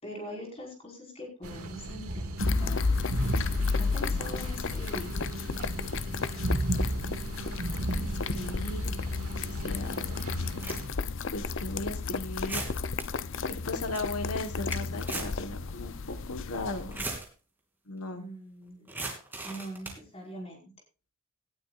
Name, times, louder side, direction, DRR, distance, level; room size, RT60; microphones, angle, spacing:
voice 1, 0.0-2.9 3.8-5.1 18.1-18.9 19.4-20.7, equal, 25° left, -1 dB, 5.2 m, -43 dB
sound 1, 1.4-10.9, right 1 dB, 80° right, 2.1 m, -34 dB
sound 2, 2.4-17.2, left 4 dB, 55° left, 0.6 m, -33 dB
voice 2, 6.7-7.6 7.9-8.9 9.4-10.0 11.3-12.6 13.5-17.1 17.9-18.3, left 2 dB, 80° left, 6 dB, 1.4 m, -37 dB
sound 3, 9.7-9.8 10.4-11.1 11.6-11.7 12.4-13.0 13.5-13.6 13.8-14.0 14.4-15.4 15.7-15.8 16.7-17.3 18.9-20.0, right 2 dB, 10° right, 3.0 m, -37 dB
18.0 x 11.5 x 2.5 m, 0.31 s
head